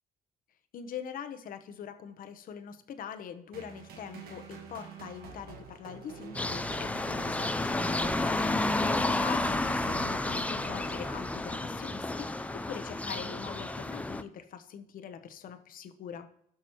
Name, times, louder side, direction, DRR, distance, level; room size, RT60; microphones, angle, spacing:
voice 1, 0.7-16.3, left 8 dB, 55° left, 9 dB, 1.0 m, -43 dB
sound 1, 3.5-11.9, right 6 dB, 65° right, 1.7 m, -47 dB
sound 2, 6.3-14.2, left 2 dB, 10° left, 0.5 m, -31 dB
16.0 x 6.0 x 3.0 m, 0.72 s
cardioid pair, 110°, 17 cm